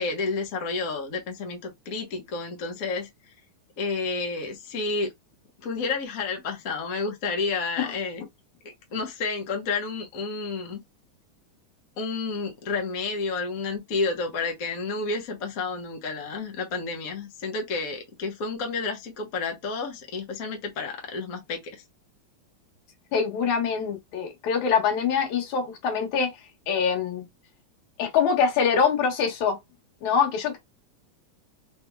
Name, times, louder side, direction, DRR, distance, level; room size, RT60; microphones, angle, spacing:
voice 1, 0.0-3.1 3.8-5.1 5.6-8.2 8.9-10.8 12.0-21.8, left 4 dB, 50° left, 1.0 m, -30 dB
voice 2, 23.1-26.3 26.7-27.3 28.0-29.6 30.0-30.6, left 6 dB, 80° left, 2.8 m, -24 dB
5.1 x 3.5 x 2.3 m
omnidirectional pair, 3.3 m